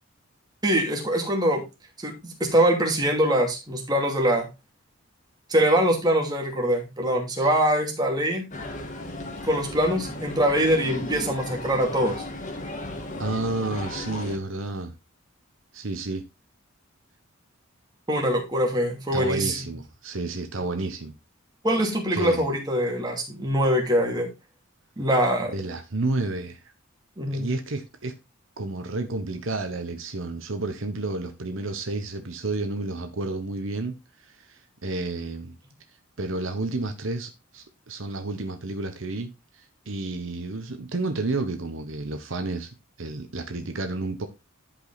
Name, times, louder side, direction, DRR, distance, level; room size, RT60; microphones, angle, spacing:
voice 1, 0.6-1.6 2.0-4.5 5.5-8.4 9.4-12.2 18.1-19.6 21.6-24.3 25.0-25.5 27.2-27.5, equal, 20° right, 2.6 m, -23 dB
sound 1, 8.5-14.4, left 1 dB, 35° left, 1.8 m, -35 dB
voice 2, 13.2-14.9 15.7-16.3 19.1-21.1 22.1-22.5 25.4-26.7 27.3-28.1 28.6-35.5 36.2-42.7 43.0-44.3, right 2 dB, 65° right, 1.1 m, -31 dB
11.5 x 5.3 x 4.0 m
head